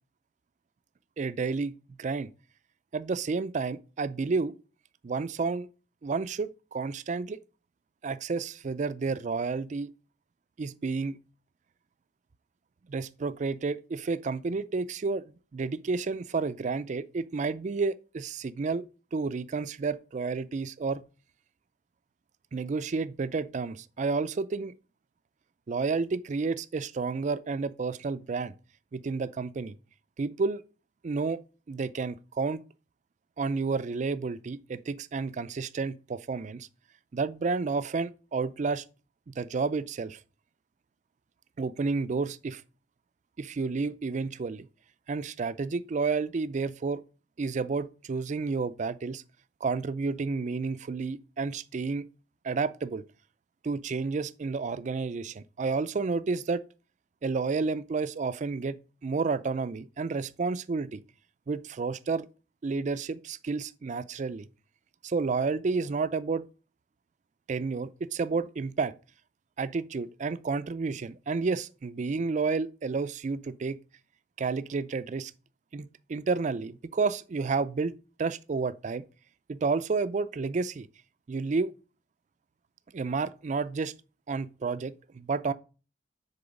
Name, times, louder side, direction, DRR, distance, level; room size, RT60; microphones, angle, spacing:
voice 1, 1.2-1.7 2.0-2.3 2.9-4.5 5.0-5.7 6.0-7.4 8.0-9.9 10.6-11.2 12.9-15.2 15.5-18.8 19.1-21.0 22.5-24.7 25.7-28.5 28.9-29.7 30.2-30.6 31.0-31.4 31.7-32.6 33.4-36.7 37.1-38.8 39.3-40.2 41.6-42.6 43.4-44.7 45.1-47.0 47.4-49.2 49.6-52.0 52.4-53.0 53.6-56.6 57.2-61.0 61.5-62.3 62.6-64.5 65.0-66.5 67.5-68.9 69.6-73.8 74.4-75.3 75.7-79.0 79.5-80.9 81.3-81.7 82.9-83.9 84.3-85.5, right 4 dB, 40° right, 0.4 m, -30 dB
6.9 x 4.3 x 5.0 m
head